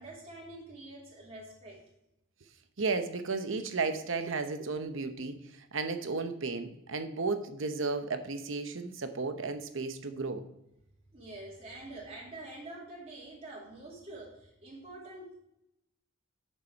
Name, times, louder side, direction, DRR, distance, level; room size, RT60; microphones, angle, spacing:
voice 1, 0.0-1.8 11.1-15.4, right 2 dB, 30° right, -4 dB, 2.5 m, -46 dB
voice 2, 2.8-5.4 5.7-10.4, right 4 dB, 60° right, 8 dB, 0.9 m, -33 dB
8.8 x 6.8 x 4.5 m, 0.84 s
head